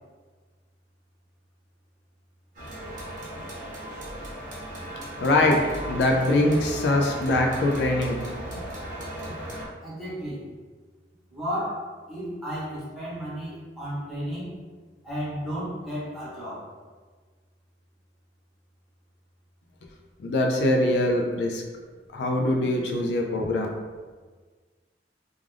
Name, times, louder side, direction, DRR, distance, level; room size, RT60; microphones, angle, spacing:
sound 1, 2.5-9.7, right 1 dB, 45° right, 0.8 m, -36 dB
voice 1, 5.2-5.6 5.9-8.2 20.2-21.6 22.1-23.7, left 1 dB, 70° left, 1 dB, 0.3 m, -23 dB
voice 2, 9.8-10.4 11.3-14.5 15.0-16.7, equal, ahead, -10 dB, 0.9 m, -33 dB
2.4 x 2.4 x 3.2 m, 1.4 s
head